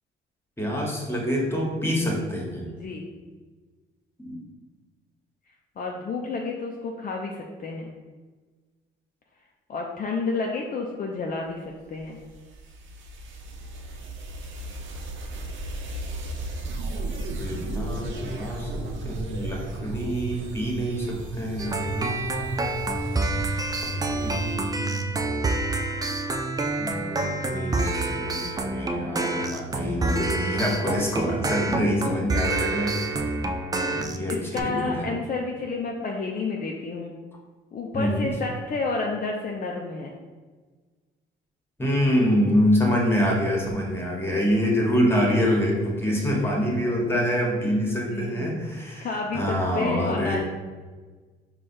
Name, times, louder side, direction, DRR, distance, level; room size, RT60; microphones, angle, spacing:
voice 1, 0.6-2.7 4.2-4.3 17.3-22.1 23.3-23.5 23.8-23.9 24.2-25.0 26.8-33.2 33.8-35.1 37.9-38.3 41.8-50.4, equal, 10° left, -1 dB, 1.2 m, -26 dB
voice 2, 2.7-3.1 5.8-7.9 9.7-12.2 31.8-32.4 34.3-37.1 37.7-40.1 46.0-46.4 46.9-47.0 48.1-48.5 49.0-50.4, left 3 dB, 45° left, 0 dB, 0.5 m, -31 dB
sound 1, 11.7-24.6, right 1 dB, 75° right, 0.7 m, -35 dB
sound 2, 21.6-34.6, right 2 dB, 20° right, 0.4 m, -28 dB
4.8 x 2.4 x 4.3 m, 1.4 s
cardioid pair, 90°, 20 cm